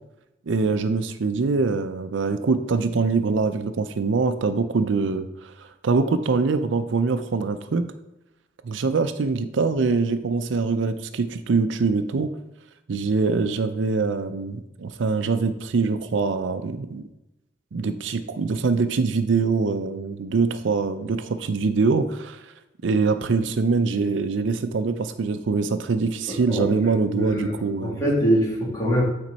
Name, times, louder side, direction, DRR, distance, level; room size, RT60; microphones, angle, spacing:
voice 1, 0.5-7.8 8.6-12.3 12.9-17.0 17.7-22.5 22.8-28.0, right 4 dB, 80° right, 10 dB, 0.5 m, -24 dB
voice 2, 27.1-29.0, equal, 20° left, -5 dB, 2.5 m, -23 dB
9.0 x 4.3 x 4.1 m, 0.94 s
head